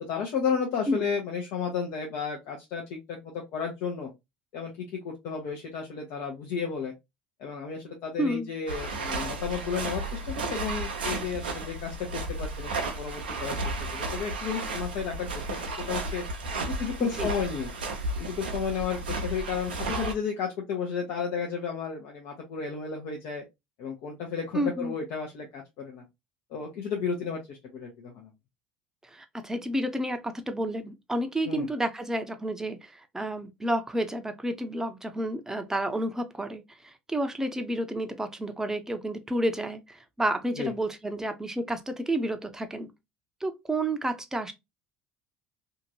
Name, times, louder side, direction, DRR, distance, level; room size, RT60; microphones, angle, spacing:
voice 1, 0.1-4.1 4.5-6.9 7.4-16.2 16.6-17.7 18.2-23.4 23.8-26.0 26.5-28.3 31.4-31.7 40.6-40.7, left 6 dB, 65° left, 0.8 m, -33 dB
voice 2, 8.2-8.5 17.0-17.3 24.5-24.9 29.1-42.9 43.4-44.5, right 1 dB, 10° right, 0.6 m, -30 dB
sound 1, 8.7-20.1, right 2 dB, 85° right, 0.6 m, -33 dB
2.8 x 2.5 x 2.7 m
hypercardioid pair, 65°, 5 cm